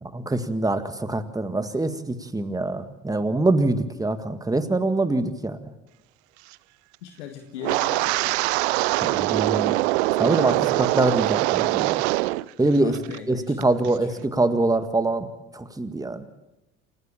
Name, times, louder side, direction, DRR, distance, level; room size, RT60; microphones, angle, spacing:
voice 1, 0.0-5.6 9.0-9.7 10.2-12.0 12.6-13.0 13.3-15.3 15.5-16.2, right 2 dB, 10° right, 10 dB, 1.9 m, -24 dB
voice 2, 7.0-8.4 12.8-14.3, left 8 dB, 75° left, 6 dB, 1.7 m, -39 dB
Wind, 7.6-12.5 12.7-13.2 13.6-13.9, right 20 dB, 65° right, 0.6 m, -23 dB
28.0 x 12.0 x 8.8 m, 0.97 s
figure-of-eight pair, 65°, 36 cm